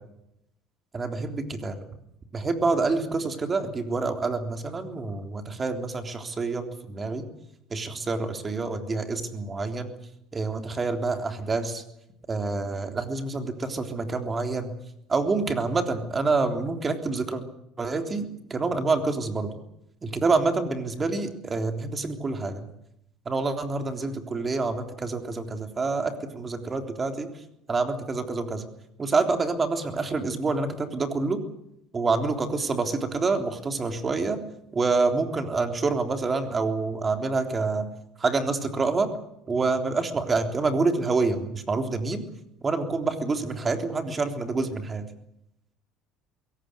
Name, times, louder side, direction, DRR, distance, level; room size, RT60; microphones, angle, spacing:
voice 1, 0.9-1.8 2.3-7.2 7.7-9.9 10.3-11.8 12.3-14.7 15.1-17.4 17.8-18.3 18.5-19.5 20.0-22.6 23.3-27.3 27.7-28.7 29.0-31.4 31.9-34.4 34.7-37.9 38.2-39.1 39.5-42.2 42.6-45.0, right 3 dB, 25° right, 6 dB, 3.5 m, -27 dB
22.0 x 18.0 x 9.7 m, 0.80 s
cardioid pair, 115°, 0 cm